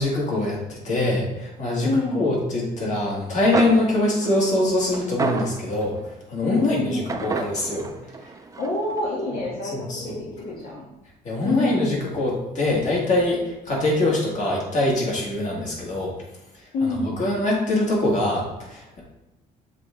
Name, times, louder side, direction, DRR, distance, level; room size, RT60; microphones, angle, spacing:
voice 1, 0.0-6.0 6.3-7.9 9.7-10.0 11.2-16.1 17.2-19.0, left 2 dB, 45° left, -3 dB, 2.3 m, -23 dB
voice 2, 1.8-2.4 6.5-7.2 8.6-10.9 11.4-12.0 16.7-17.2, left 2 dB, 70° left, -5 dB, 1.7 m, -27 dB
sound 1, 3.2-3.3 3.5-6.1 7.1-9.0, right 4 dB, 20° right, 0.5 m, -30 dB
7.3 x 3.7 x 3.8 m, 0.96 s
cardioid pair, 110°, 17 cm